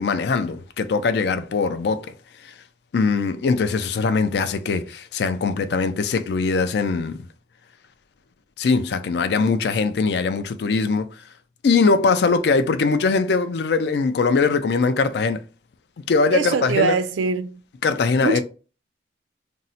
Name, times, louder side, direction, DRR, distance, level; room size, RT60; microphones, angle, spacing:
voice 1, 0.0-2.1 2.9-7.2 8.6-11.1 11.6-15.4 16.1-17.0 17.8-18.4, left 4 dB, 60° left, 0.3 m, -21 dB
voice 2, 16.3-17.6 18.2-18.4, right 4 dB, 85° right, 0.5 m, -22 dB
2.6 x 2.0 x 3.9 m
head